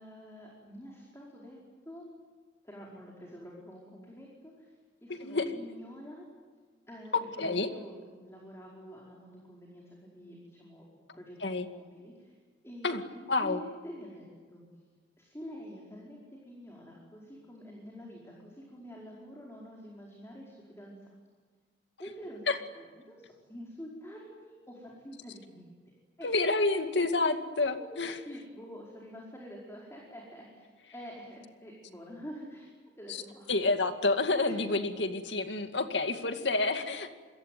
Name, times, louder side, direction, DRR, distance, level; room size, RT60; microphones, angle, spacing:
voice 1, 0.0-1.6 1.8-2.1 2.6-6.3 6.9-12.4 12.6-14.7 15.2-21.1 22.0-22.4 22.7-25.7 26.2-26.3 27.8-28.0 28.2-32.7 33.0-33.5 34.5-34.8 36.4-36.6, equal, 15° left, -2 dB, 4.9 m, -47 dB
voice 2, 5.1-5.5 7.1-7.7 11.4-11.7 12.8-13.0 13.3-13.6 22.5-22.6 26.2-28.1 33.5-37.1, left 3 dB, 80° left, 7 dB, 2.2 m, -29 dB
28.0 x 22.0 x 9.4 m, 1.5 s
head